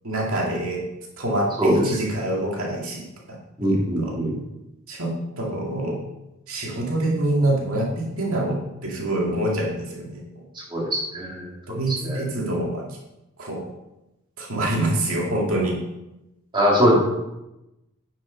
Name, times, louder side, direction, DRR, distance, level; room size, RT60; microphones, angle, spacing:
voice 1, 0.0-0.8 1.2-3.1 3.7-4.1 4.9-6.0 6.5-10.2 11.7-12.8 13.4-13.7 14.4-15.8, right 1 dB, 75° right, -2 dB, 2.1 m, -25 dB
voice 2, 1.6-2.0 3.6-4.3 10.7-12.2 16.5-16.9, equal, 25° right, -5 dB, 3.4 m, -22 dB
9.7 x 7.2 x 5.4 m, 0.93 s
head